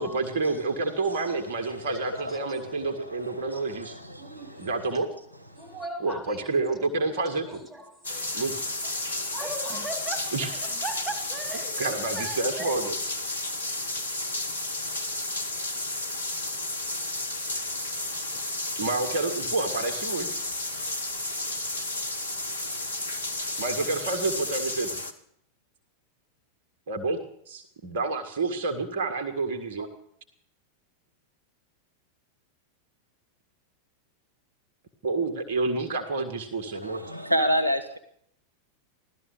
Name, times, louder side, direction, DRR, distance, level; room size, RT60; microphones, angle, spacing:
voice 1, 0.0-3.9 4.6-5.1 6.0-7.6 8.3-8.6 10.3-10.8 11.8-12.9 13.4-13.5 17.5-17.6 18.8-20.3 23.6-25.0 26.9-27.2 27.5-29.9 35.0-37.0, right 3 dB, 55° right, 1.8 m, -29 dB
voice 2, 1.7-4.7 5.5-5.7 36.8-38.0, equal, 85° right, 1.1 m, -30 dB
voice 3, 4.2-5.0 5.6-6.8 7.1-8.5 8.8-12.8, right 2 dB, 15° right, 3.5 m, -39 dB
sound 1, 8.0-25.1, left 2 dB, 75° left, 1.4 m, -32 dB
16.5 x 13.0 x 6.7 m
figure-of-eight pair, 90°, 0 cm